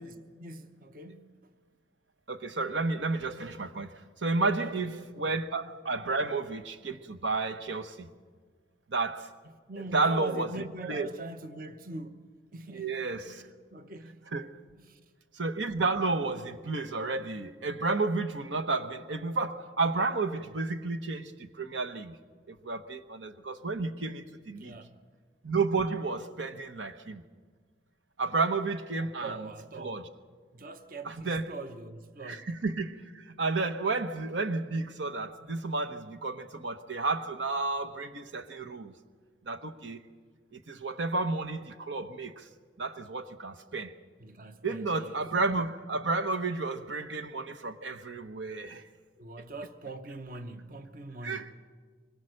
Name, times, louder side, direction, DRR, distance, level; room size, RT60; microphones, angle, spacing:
voice 1, 0.4-1.5 4.6-5.4 9.7-12.2 12.5-14.2 14.8-15.0 24.5-25.0 29.0-30.1 30.5-32.5 44.2-45.2 49.2-51.5, right 2 dB, 50° right, 1.0 m, -43 dB
voice 2, 2.3-8.1 8.9-9.3 9.9-11.1 12.7-13.4 14.3-14.5 15.3-22.2 22.5-24.8 25.4-27.2 28.2-29.5 29.8-30.0 31.0-31.5 32.2-38.9 39.5-40.0 40.5-42.5 42.8-43.9 44.6-48.8 51.2-51.5, right 3 dB, 80° right, 1.1 m, -32 dB
24.5 x 22.0 x 6.5 m
head